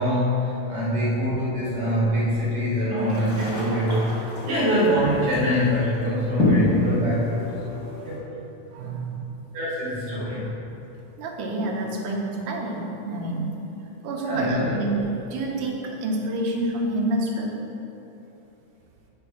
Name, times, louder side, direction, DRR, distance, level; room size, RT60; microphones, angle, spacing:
voice 1, 0.0-7.4 8.0-8.3 9.5-10.6 14.2-14.8, equal, 55° right, -9 dB, 2.6 m, -24 dB
sound 1, 3.0-8.2, left 2 dB, 75° left, 0.8 m, -28 dB
voice 2, 8.7-9.2 11.2-13.6 14.0-17.5, right 2 dB, 75° right, -1 dB, 2.3 m, -28 dB
9.5 x 3.4 x 5.9 m, 2.9 s
omnidirectional pair, 4.0 m